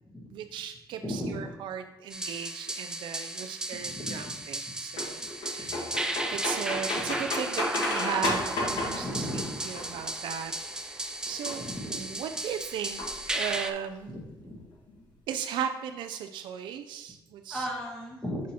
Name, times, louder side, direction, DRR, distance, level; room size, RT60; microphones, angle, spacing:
voice 1, 0.3-10.5 10.9-13.0 13.3-14.1 15.3-17.7, right 8 dB, 85° right, 7 dB, 0.4 m, -37 dB
voice 2, 1.0-1.4 3.6-4.3 5.6-5.7 7.0-7.2 9.0-9.6 11.6-11.9 14.1-14.6 17.5-18.4, equal, 10° left, -4 dB, 1.4 m, -36 dB
sound 1, 2.1-13.7, right 1 dB, 10° right, 0.3 m, -35 dB
sound 2, 5.0-10.3 11.3-11.7 13.0-13.6 14.0-14.1 14.2-14.3 14.6-15.0, left 2 dB, 85° left, 1.2 m, -33 dB
6.1 x 6.0 x 2.9 m, 1.0 s
cardioid pair, 135°, 8 cm